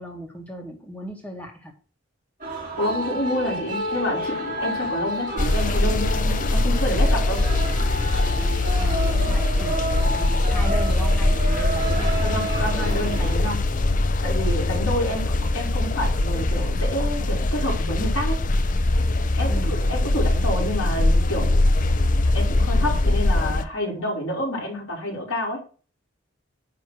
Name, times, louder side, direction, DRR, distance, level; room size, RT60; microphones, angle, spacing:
voice 1, 0.0-1.7 8.8-12.3 19.5-19.8, equal, 5° left, 1 dB, 1.8 m, -37 dB
sound 1, 2.4-13.4, right 1 dB, 40° right, 3.4 m, -30 dB
voice 2, 2.8-7.4 12.2-13.6 14.2-15.2 15.5-18.4 19.4-21.8 22.3-25.6, equal, 90° left, -3 dB, 4.0 m, -28 dB
sound 2, 5.4-23.6, left 2 dB, 40° left, 0.6 m, -22 dB
9.7 x 3.5 x 6.3 m, 0.38 s
head